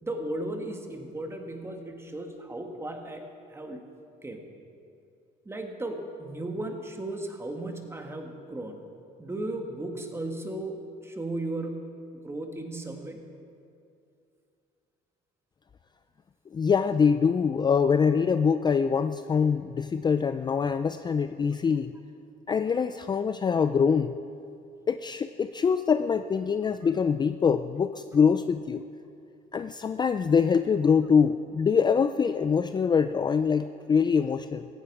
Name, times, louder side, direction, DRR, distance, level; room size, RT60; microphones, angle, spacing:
voice 1, 0.0-3.8 4.2-4.4 5.5-8.9 9.2-13.2, right 1 dB, 15° right, 3 dB, 1.9 m, -36 dB
voice 2, 16.5-21.9 22.5-24.2 24.9-28.9 29.5-34.7, left 6 dB, 25° left, 10 dB, 0.4 m, -24 dB
16.5 x 15.0 x 4.9 m, 2.5 s
cardioid pair, 110°, 17 cm